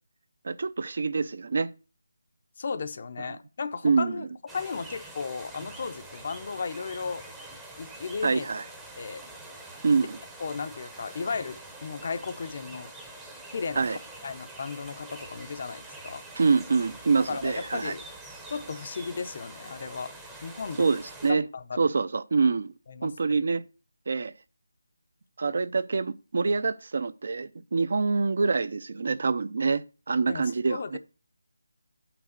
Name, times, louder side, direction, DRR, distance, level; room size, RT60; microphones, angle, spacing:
voice 1, 0.4-1.7 3.3-3.4 3.8-4.3 8.2-8.6 9.8-10.2 13.8-14.0 16.4-17.9 20.8-21.4 21.8-22.7 23.0-23.6 24.1-24.3 25.4-31.0, right 4 dB, 50° right, 0.6 m, -26 dB
voice 2, 2.6-4.3 4.5-7.2 7.8-8.5 9.0-9.2 10.4-12.9 13.5-16.2 17.3-18.0 18.5-20.1 20.4-20.9 21.3-21.8 22.9-23.1 30.3-30.4 30.7-31.0, left 5 dB, 35° left, 0.6 m, -35 dB
sound 1, 4.5-21.3, right 2 dB, 5° right, 0.7 m, -45 dB
6.9 x 6.0 x 6.4 m
figure-of-eight pair, 170°, 0 cm